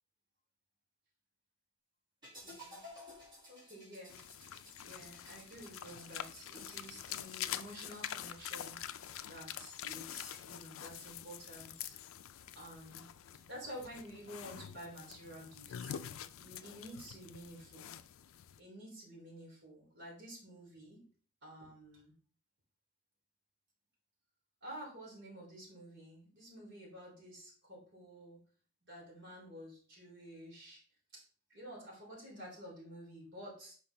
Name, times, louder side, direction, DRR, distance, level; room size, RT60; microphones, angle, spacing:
sound 1, 2.2-10.3, left 1 dB, 20° right, 2.0 m, -57 dB
voice 1, 2.4-2.8 3.5-4.2 4.8-8.8 9.3-12.0 12.5-13.1 13.5-16.0 16.4-17.9 18.6-21.0 21.4-22.1 24.6-28.4 28.9-30.8 31.1-31.2 31.5-33.7, equal, 55° right, -4 dB, 3.1 m, -50 dB
sound 2, 4.1-18.6, left 10 dB, 75° left, 0.4 m, -46 dB
5.6 x 5.0 x 3.4 m, 0.43 s
head